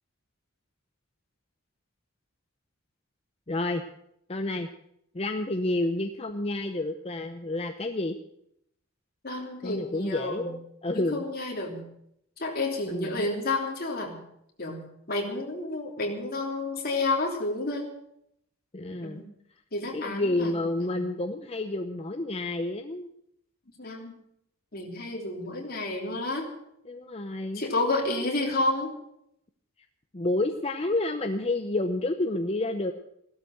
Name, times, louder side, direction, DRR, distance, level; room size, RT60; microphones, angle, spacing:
voice 1, 3.5-3.8 4.3-4.7 5.1-8.2 9.6-11.2 12.9-13.2 18.7-19.2 19.9-23.1 26.9-27.6 30.1-32.9, left 2 dB, 30° left, 6 dB, 0.8 m, -29 dB
voice 2, 9.2-10.5 10.9-11.8 12.4-14.2 14.6-14.8 15.1-17.9 19.0-19.3 19.7-21.0 23.8-24.1 24.7-26.5 27.5-29.0, left 2 dB, 45° left, 0 dB, 3.3 m, -30 dB
15.5 x 12.5 x 6.6 m, 0.75 s
head